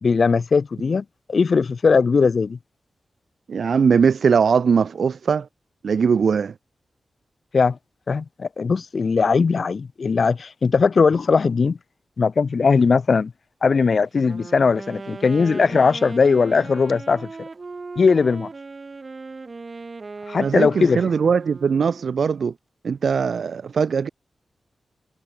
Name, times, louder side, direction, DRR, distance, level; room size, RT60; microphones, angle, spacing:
voice 1, 0.0-2.6 7.5-7.8 8.1-11.8 12.2-13.3 13.6-17.3 17.9-18.5 20.3-21.0, left 5 dB, 50° left, 1.6 m, -19 dB
voice 2, 3.5-5.5 5.8-6.5 20.4-22.5 22.8-24.1, right 6 dB, 70° right, 0.4 m, -20 dB
Wind instrument woodwind instrument, 14.1-22.2, right 3 dB, 35° right, 2.3 m, -38 dB
wide cardioid pair, 160°, 0 cm